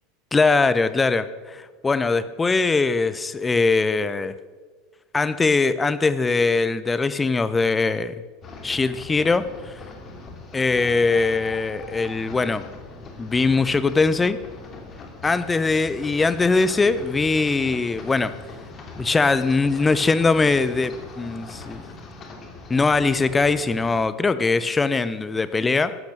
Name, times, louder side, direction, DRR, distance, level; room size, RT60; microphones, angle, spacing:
voice 1, 0.3-4.3 5.1-8.1 8.6-9.5 10.5-12.6 13.2-14.4 15.2-18.3 19.0-21.8 22.7-26.0, left 3 dB, 15° left, 15 dB, 0.8 m, -21 dB
sound 1, 8.4-24.0, left 3 dB, 30° left, 2.9 m, -40 dB
14.5 x 11.5 x 6.7 m, 1.4 s
figure-of-eight pair, 80°, 0 cm